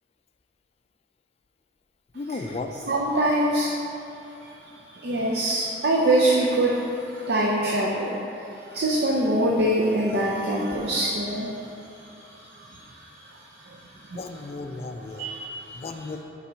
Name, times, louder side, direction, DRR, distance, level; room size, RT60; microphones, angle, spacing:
voice 1, 2.1-2.7 14.1-15.3 15.7-16.2, left 3 dB, 35° left, 6 dB, 0.3 m, -34 dB
voice 2, 2.9-3.7 4.2-14.2 15.2-15.8, right 1 dB, 55° right, -3 dB, 0.6 m, -25 dB
5.7 x 4.0 x 5.6 m, 2.9 s
head